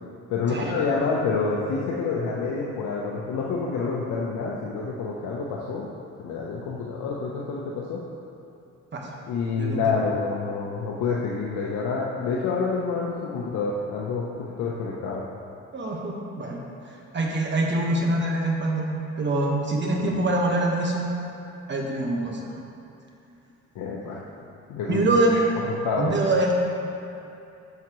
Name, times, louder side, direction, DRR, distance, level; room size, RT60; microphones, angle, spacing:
voice 1, 0.3-5.9 6.2-8.0 9.3-15.2 20.0-20.3 23.7-24.2 24.7-25.0 25.7-26.1, left 4 dB, 80° left, -3 dB, 0.8 m, -28 dB
voice 2, 9.6-10.0 15.7-16.6 17.1-18.9 19.2-21.1 21.7-22.4 24.8-25.5 26.0-26.5, right 2 dB, 40° right, -1 dB, 1.3 m, -24 dB
11.0 x 5.8 x 3.1 m, 2.7 s
cardioid pair, 90°, 30 cm